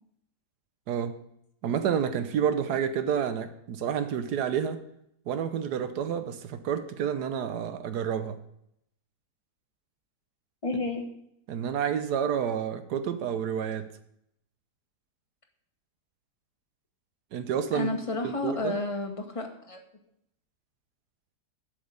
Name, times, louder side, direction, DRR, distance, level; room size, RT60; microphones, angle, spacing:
voice 1, 1.6-4.8 5.3-8.4 11.5-13.9 17.3-18.0 18.2-18.7, right 8 dB, 85° right, 10 dB, 1.4 m, -29 dB
voice 2, 10.6-11.0 17.7-19.8, left 3 dB, 20° left, 2 dB, 1.4 m, -31 dB
7.9 x 6.5 x 8.3 m, 0.75 s
omnidirectional pair, 1.7 m